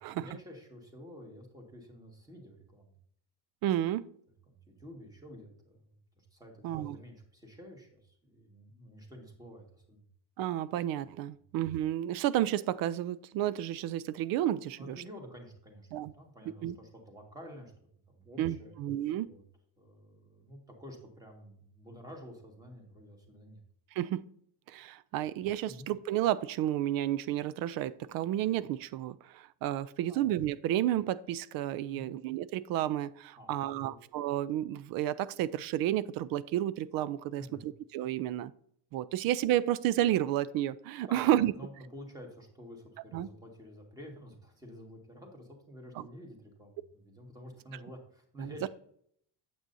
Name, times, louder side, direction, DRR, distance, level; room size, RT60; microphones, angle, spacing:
voice 1, 0.1-2.9 4.5-10.1 14.8-17.7 18.1-18.8 19.2-19.4 19.8-23.6 25.6-25.9 30.1-30.3 31.9-32.2 33.4-34.0 37.4-37.7 41.1-48.7, equal, 10° right, 1 dB, 1.7 m, -50 dB
voice 2, 3.6-4.0 6.6-7.0 10.4-15.0 15.9-16.1 16.6-16.8 18.4-19.3 24.0-24.2 24.7-38.5 38.9-41.5 43.1-43.3 46.0-46.1 48.4-48.5, right 12 dB, 60° right, 18 dB, 0.5 m, -31 dB
8.8 x 7.8 x 2.7 m, 0.66 s
cardioid pair, 140°, 39 cm